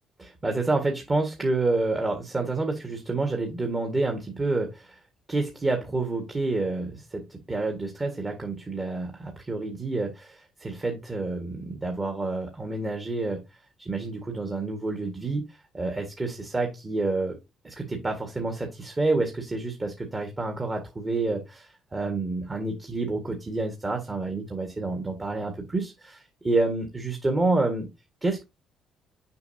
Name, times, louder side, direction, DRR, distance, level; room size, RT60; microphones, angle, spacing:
voice 1, 0.2-5.0 5.3-13.4 13.8-15.4 15.7-17.4 17.6-27.9 28.2-28.4, right 3 dB, 25° right, 3 dB, 1.5 m, -28 dB
6.9 x 5.3 x 2.7 m, 0.23 s
supercardioid pair, 75°, 0 cm